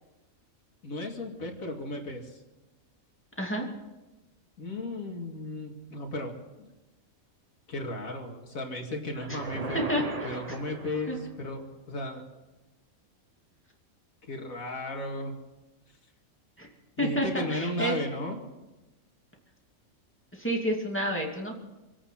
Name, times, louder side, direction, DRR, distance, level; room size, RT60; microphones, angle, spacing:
voice 1, 0.8-2.4 4.6-6.7 7.7-9.9 10.2-12.2 14.3-15.4 17.0-18.4, left 1 dB, 75° left, 1 dB, 2.6 m, -35 dB
voice 2, 3.4-3.7 9.3-9.4 9.9-10.0 10.5-10.6 11.1-11.2 16.6-16.7 17.0-18.0 20.3-21.5, equal, 10° left, -1 dB, 2.5 m, -29 dB
sound 1, 9.1-11.5, right 3 dB, 30° right, 0.9 m, -38 dB
26.0 x 8.8 x 5.8 m, 1.1 s
omnidirectional pair, 1.5 m